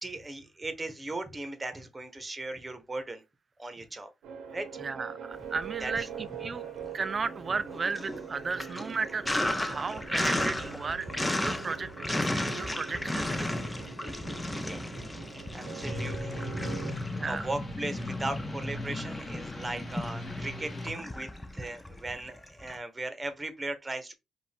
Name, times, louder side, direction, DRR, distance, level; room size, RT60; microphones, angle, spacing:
voice 1, 0.0-3.2 3.6-4.1 4.5-4.7 5.8-6.1 14.5-15.0 15.5-16.9 17.2-24.1, right 2 dB, 20° right, 1.1 m, -38 dB
sound 1, 4.2-16.9, right 7 dB, 85° right, 1.0 m, -43 dB
voice 2, 4.8-6.6 6.9-9.3 9.6-11.1 11.4-12.2 12.5-13.5 17.1-17.5, right 4 dB, 35° right, 0.5 m, -34 dB
Sink (filling or washing), 5.4-6.3 6.6-22.8, left 1 dB, 10° left, 0.6 m, -35 dB
sound 2, 15.8-20.9, left 1 dB, 30° left, 1.9 m, -37 dB
5.1 x 2.6 x 3.4 m
cardioid pair, 90°, 0 cm